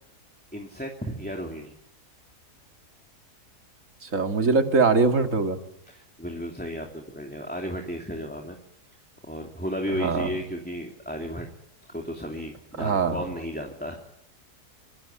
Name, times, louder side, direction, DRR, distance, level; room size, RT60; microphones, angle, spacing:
voice 1, 0.5-1.7 5.9-8.6 9.3-11.5 11.9-14.0, equal, 5° left, 2 dB, 2.6 m, -34 dB
voice 2, 4.0-5.6 9.9-10.3 12.8-13.2, right 4 dB, 50° right, 5 dB, 2.6 m, -22 dB
25.0 x 22.0 x 9.9 m, 0.80 s
omnidirectional pair, 1.7 m